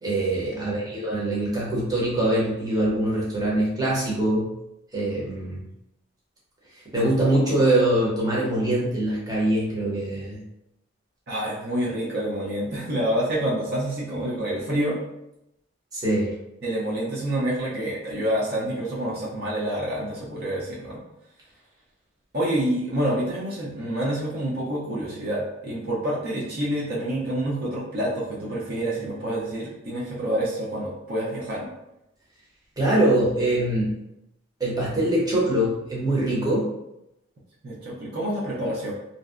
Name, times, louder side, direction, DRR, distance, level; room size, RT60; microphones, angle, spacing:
voice 1, 0.0-4.5 4.9-5.6 6.9-10.4 15.9-16.3 32.8-33.9 34.6-36.7, right 1 dB, 20° right, -6 dB, 0.7 m, -23 dB
voice 2, 0.5-0.9 11.3-15.0 16.6-21.0 22.3-31.7 37.6-38.9, right 1 dB, 55° right, -6 dB, 0.6 m, -27 dB
2.6 x 2.0 x 2.4 m, 0.85 s
head